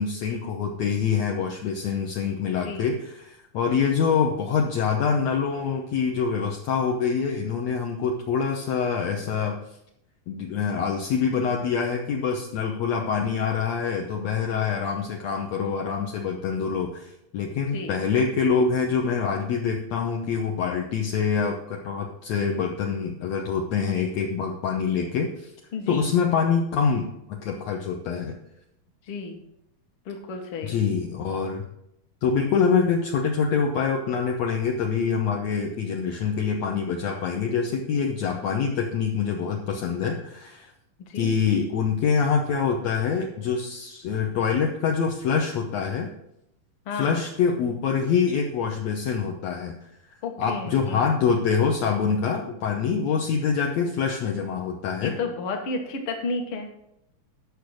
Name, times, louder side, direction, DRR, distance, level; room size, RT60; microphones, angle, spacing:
voice 1, 0.0-9.6 10.3-25.5 25.9-28.3 30.6-31.6 32.2-40.7 41.1-46.1 46.9-49.9 50.4-55.2, left 6 dB, 75° left, 1 dB, 1.6 m, -25 dB
voice 2, 2.5-2.8 17.7-17.9 25.7-26.1 29.1-29.4 30.0-30.8 41.1-41.3 46.8-47.2 50.2-51.1 55.0-56.7, left 4 dB, 55° left, 3 dB, 1.7 m, -32 dB
10.5 x 6.5 x 6.5 m, 0.79 s
omnidirectional pair, 4.3 m